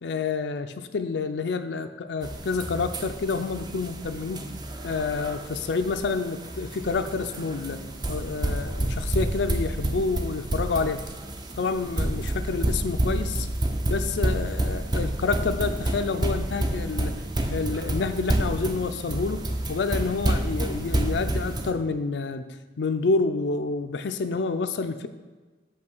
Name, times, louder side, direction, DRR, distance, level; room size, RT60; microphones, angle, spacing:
voice 1, 0.0-4.5 4.8-7.8 8.1-11.0 11.6-13.5 13.9-17.1 17.5-22.5 22.8-25.1, left 4 dB, 80° left, 8 dB, 0.4 m, -28 dB
sound 1, 2.2-21.7, right 1 dB, 25° right, 0.5 m, -29 dB
6.4 x 5.5 x 5.3 m, 1.3 s
head